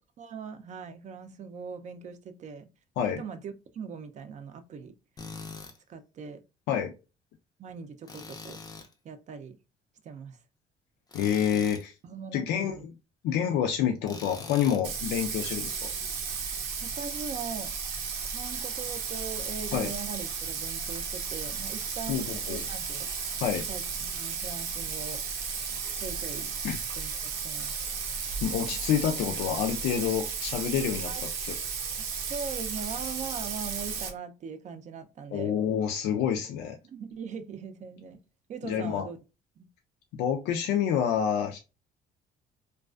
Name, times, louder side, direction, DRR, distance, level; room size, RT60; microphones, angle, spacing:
voice 1, 0.2-2.7 3.2-5.0 5.9-6.4 7.6-8.6 9.0-9.6 10.0-10.4 12.0-12.9 13.3-13.5 16.8-17.7 18.2-23.1 23.7-25.2 26.0-26.5 27.0-27.7 31.0-31.2 32.0-35.5 36.8-38.2 38.5-39.2 39.6-39.7, right 6 dB, 45° right, 0.4 m, -40 dB
Tools, 5.2-5.8 8.1-8.9 11.1-11.9 14.0-14.9, left 4 dB, 25° left, 0.4 m, -43 dB
voice 2, 11.1-11.9 12.3-12.8 13.2-15.9 19.7-19.9 22.1-22.6 23.4-23.6 26.6-26.8 28.4-31.5 35.3-36.8 38.6-39.1 40.1-41.6, left 9 dB, 80° left, 0.4 m, -28 dB
Bathtub (filling or washing), 14.8-34.1, right 5 dB, 85° right, 0.6 m, -34 dB
2.3 x 2.3 x 2.3 m
cardioid pair, 110°, 17 cm